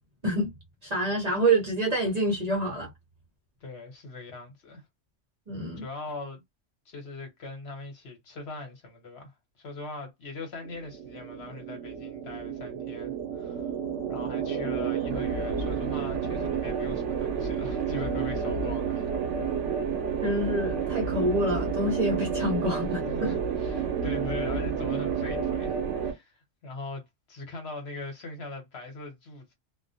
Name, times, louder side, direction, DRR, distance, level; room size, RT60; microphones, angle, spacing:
voice 1, 0.8-2.9 5.5-5.8 20.2-23.3, right 1 dB, 40° right, 0.8 m, -27 dB
voice 2, 3.6-4.8 5.8-6.4 6.8-13.8 14.1-19.1 23.0-29.5, left 2 dB, 60° left, 1.1 m, -41 dB
sound 1, 10.6-26.1, right 6 dB, 80° right, 1.0 m, -30 dB
2.4 x 2.1 x 2.6 m
omnidirectional pair, 1.2 m